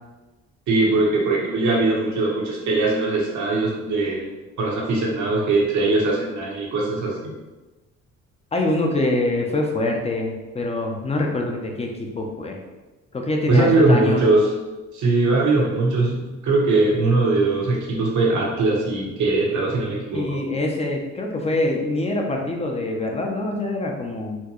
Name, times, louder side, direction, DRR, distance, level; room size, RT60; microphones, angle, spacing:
voice 1, 0.7-4.3 4.6-7.3 13.5-14.5 14.9-20.4, right 2 dB, 75° right, -3 dB, 1.1 m, -20 dB
voice 2, 8.5-12.6 13.1-14.2 20.1-24.4, left 2 dB, 20° left, 1 dB, 0.6 m, -25 dB
4.3 x 2.2 x 3.0 m, 1.1 s
cardioid pair, 90°, 30 cm